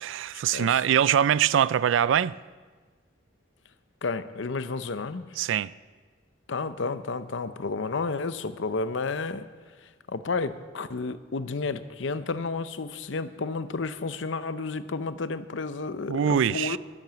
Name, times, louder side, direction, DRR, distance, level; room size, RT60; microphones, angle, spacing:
voice 1, 0.0-2.4 5.4-5.7 16.1-16.8, right 9 dB, 75° right, 0.3 m, -23 dB
voice 2, 4.0-5.3 6.5-9.5 9.8-16.8, left 4 dB, 70° left, 0.7 m, -31 dB
12.0 x 10.5 x 7.0 m
head